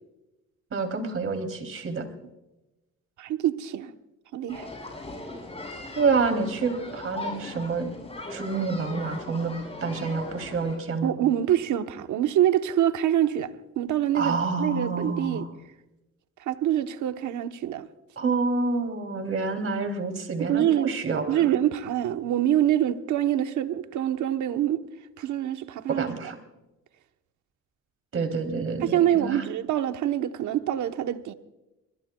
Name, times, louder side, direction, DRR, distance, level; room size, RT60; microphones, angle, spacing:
voice 1, 0.7-2.1 5.9-7.9 8.3-9.5 9.8-11.1 14.1-15.5 18.2-21.5 25.9-26.4 28.1-29.4, right 4 dB, 45° right, 3.2 m, -28 dB
voice 2, 3.2-3.9 4.3-4.7 11.0-13.5 13.8-15.5 16.4-17.9 20.5-20.9 21.3-24.8 25.2-26.3 28.8-31.3, right 11 dB, 75° right, 1.1 m, -25 dB
sound 1, 4.5-10.8, left 2 dB, 20° left, 7.4 m, -38 dB
25.0 x 21.0 x 2.3 m
cardioid pair, 90°, 30 cm